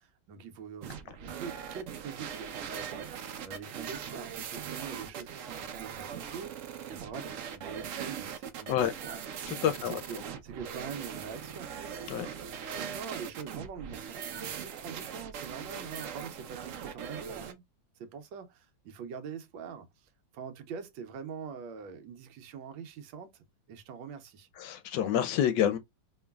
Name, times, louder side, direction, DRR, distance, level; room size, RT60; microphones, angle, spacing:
voice 1, 0.0-9.2 9.6-11.7 12.2-17.6 18.0-24.5, right 6 dB, 90° right, 1.5 m, -44 dB
sound 1, 0.8-17.5, right 8 dB, 70° right, 0.7 m, -40 dB
voice 2, 9.5-10.0 12.1-12.3 24.6-25.8, left 10 dB, 75° left, 1.2 m, -28 dB
4.5 x 3.0 x 2.3 m
omnidirectional pair, 2.1 m